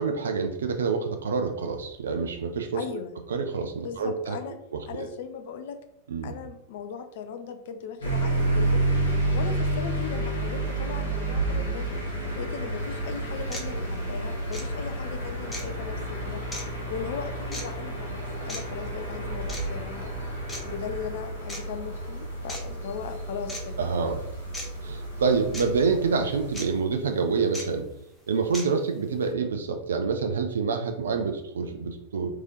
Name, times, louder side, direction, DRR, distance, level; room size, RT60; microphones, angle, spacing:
voice 1, 0.0-2.8 3.3-4.4 4.7-5.1 6.1-6.3 23.8-24.2 24.8-27.9 28.3-32.3, right 5 dB, 65° right, 5 dB, 0.4 m, -27 dB
voice 2, 2.7-3.1 3.8-4.6 4.9-5.8 6.2-8.8 9.3-12.0 12.3-16.6 16.9-20.1 20.6-23.8, left 7 dB, 55° left, 8 dB, 0.5 m, -38 dB
sound 1, 8.0-26.8, right 2 dB, 75° left, 1.4 m, -30 dB
sound 2, 13.5-13.7 14.5-14.7 15.5-15.7 16.5-16.6 17.5-17.7 18.5-18.6 19.5-19.7 20.5-20.6 21.5-21.6 22.5-22.6 23.5-23.6 24.5-24.7 25.5-25.6 26.5-26.7 27.5-27.6 28.5-28.7, left 1 dB, 10° left, 1.0 m, -36 dB
3.6 x 3.2 x 3.8 m, 0.79 s
figure-of-eight pair, 90°, 0 cm